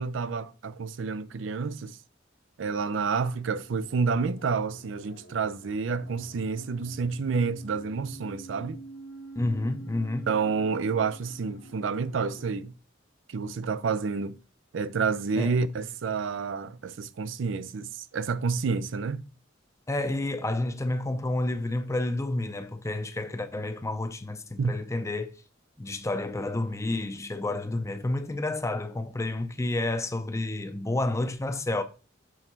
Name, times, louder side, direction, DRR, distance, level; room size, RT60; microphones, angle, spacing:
voice 1, 0.0-2.0 2.6-8.8 10.3-12.7 13.3-14.4 14.7-19.2 24.6-24.8, right 5 dB, 75° right, 0.5 m, -29 dB
sound 1, 3.3-12.5, right 2 dB, 80° left, 1.3 m, -48 dB
voice 2, 9.4-10.3 15.4-15.6 19.9-25.3 25.8-31.8, left 2 dB, 15° left, 0.6 m, -30 dB
6.3 x 3.9 x 4.3 m
head